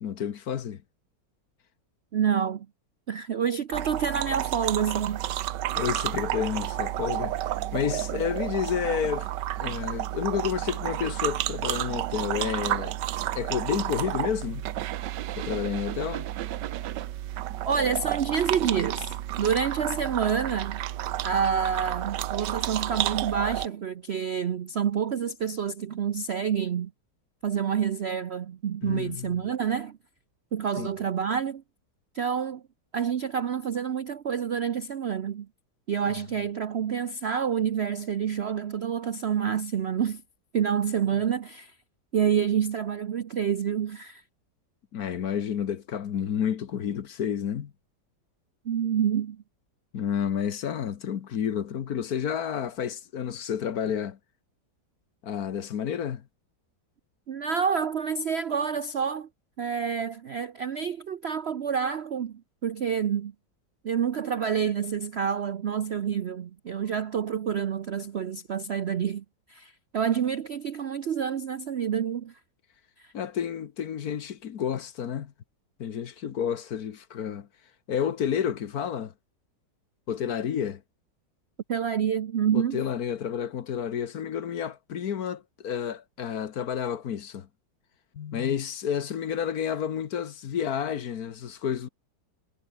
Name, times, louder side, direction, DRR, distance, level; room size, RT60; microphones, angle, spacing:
voice 1, 0.0-0.8 5.8-7.4 7.7-9.3 9.6-13.0 13.3-14.7 15.4-16.2 28.8-29.5 30.8-30.9 44.9-47.7 49.9-54.2 55.2-56.3 73.1-75.3 75.8-77.5 77.9-79.1 80.1-80.8 82.5-87.5 88.1-91.9, left 8 dB, 60° left, 1.5 m, -30 dB
voice 2, 2.1-2.7 3.1-5.3 17.6-20.8 21.2-26.9 27.4-30.0 30.5-31.6 32.1-32.6 32.9-35.5 35.9-40.2 40.5-41.7 42.1-44.2 48.6-49.4 57.3-59.3 59.6-63.3 63.8-72.4 73.0-73.1 81.7-82.8, right 7 dB, 60° right, 0.7 m, -28 dB
sound 1, 3.7-23.7, right 13 dB, 75° right, 1.4 m, -31 dB
omnidirectional pair, 1.9 m